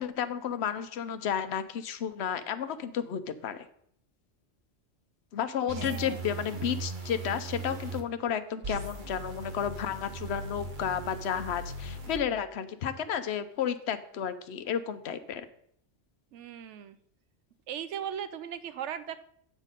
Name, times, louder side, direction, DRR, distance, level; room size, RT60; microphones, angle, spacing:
voice 1, 0.0-3.7 5.3-15.5, left 8 dB, 65° left, 11 dB, 0.9 m, -32 dB
sound 1, 5.7-8.0 8.6-12.2, right 3 dB, 45° right, 1.1 m, -39 dB
voice 2, 5.7-6.6 16.3-17.0 17.7-19.2, right 9 dB, 75° right, 13 dB, 1.0 m, -39 dB
8.2 x 6.3 x 5.2 m, 0.68 s
omnidirectional pair, 1.2 m